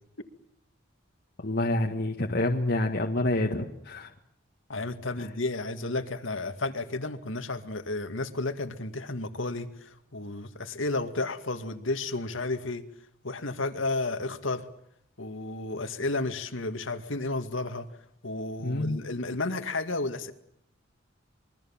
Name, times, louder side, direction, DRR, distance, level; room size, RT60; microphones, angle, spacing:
voice 1, 1.4-4.1 5.2-5.3 18.6-19.0, left 1 dB, 50° left, 1 dB, 1.8 m, -27 dB
voice 2, 4.7-12.8 13.2-14.7 15.2-17.9 18.2-20.3, left 2 dB, 70° left, 8 dB, 2.2 m, -32 dB
26.5 x 23.0 x 7.3 m, 0.73 s
head